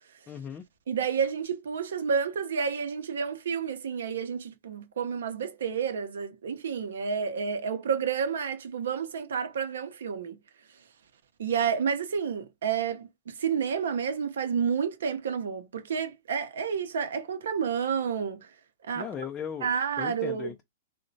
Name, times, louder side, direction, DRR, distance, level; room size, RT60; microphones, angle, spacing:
voice 1, 0.3-0.7 18.9-20.6, left 7 dB, 20° left, 0.4 m, -38 dB
voice 2, 0.9-10.4 11.4-18.5 18.9-19.1 19.6-20.5, right 6 dB, 75° right, 0.6 m, -30 dB
2.8 x 2.1 x 2.6 m
hypercardioid pair, 125°, 0 cm